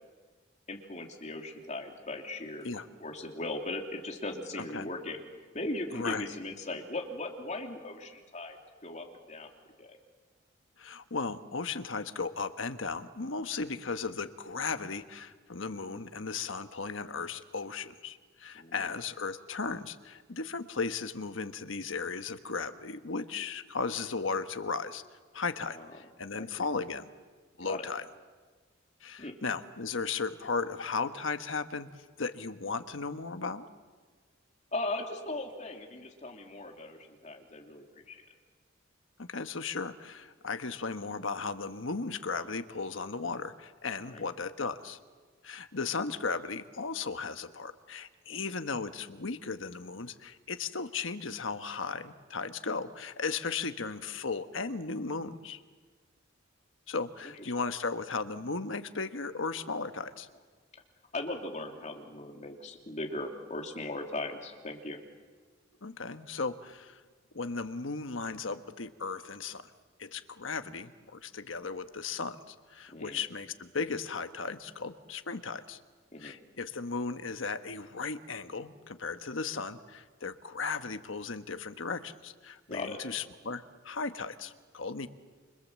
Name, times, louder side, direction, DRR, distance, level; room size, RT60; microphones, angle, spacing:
voice 1, 0.7-2.7 3.0-5.2 5.5-8.6 8.8-9.5 9.8-10.0 18.5-18.9 25.6-25.9 26.4-26.5 27.6-27.9 29.2-29.3 34.7-38.2 43.9-44.3 48.3-48.4 61.1-65.0 72.9-73.2 76.1-76.3 82.7-83.0, left 2 dB, 35° left, 2 dB, 3.1 m, -38 dB
voice 2, 4.6-4.9 5.9-6.3 10.8-25.0 25.3-27.0 27.6-28.0 29.0-31.9 32.2-33.7 39.2-45.0 45.4-55.6 56.9-60.3 65.8-67.0 67.3-69.7 70.0-75.8 76.2-85.1, left 4 dB, 75° left, 10 dB, 1.2 m, -36 dB
28.5 x 26.0 x 7.5 m, 1.4 s
head